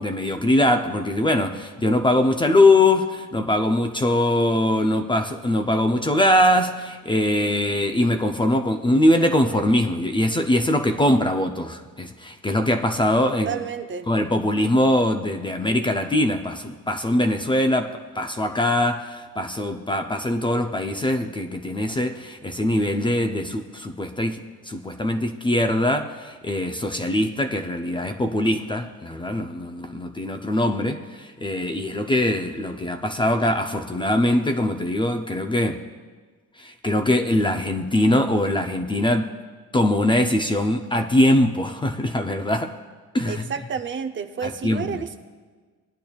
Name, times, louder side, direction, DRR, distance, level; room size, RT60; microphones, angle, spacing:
voice 1, 0.0-13.6 14.1-35.8 36.6-39.3 39.7-42.8 43.1-43.5 44.4-45.0, left 1 dB, 15° left, 5 dB, 0.5 m, -22 dB
voice 2, 13.5-14.1 43.3-45.2, right 6 dB, 35° right, 8 dB, 0.6 m, -30 dB
19.0 x 10.0 x 2.3 m, 1.5 s
cardioid pair, 125°, 33 cm